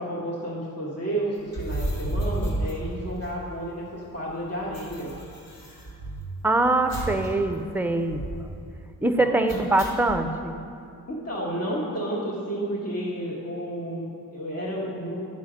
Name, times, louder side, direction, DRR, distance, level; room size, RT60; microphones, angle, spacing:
voice 1, 0.0-5.1 9.1-9.3 11.1-15.2, right 1 dB, 45° left, -5 dB, 1.5 m, -31 dB
sound 1, 1.4-3.7 4.0-4.1 4.3-6.4 6.9-7.3 7.6-7.7 8.1-8.6 9.5-10.2, right 1 dB, 75° left, 1.6 m, -32 dB
voice 2, 6.4-8.2 9.0-10.5, right 2 dB, 5° right, 7 dB, 0.5 m, -23 dB
9.0 x 5.7 x 5.0 m, 2.5 s
cardioid pair, 80°, 35 cm